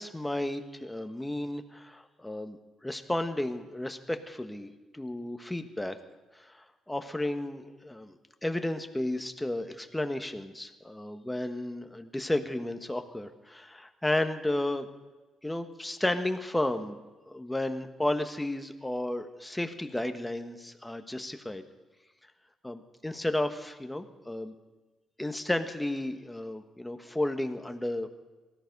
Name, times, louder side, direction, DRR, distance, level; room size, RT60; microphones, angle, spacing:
voice 1, 0.0-6.0 6.3-14.9 15.4-17.0 17.3-21.6 22.6-24.5 25.2-28.1, left 1 dB, 10° left, 7 dB, 1.3 m, -33 dB
18.5 x 13.5 x 5.4 m, 1.2 s
cardioid pair, 90°, 0 cm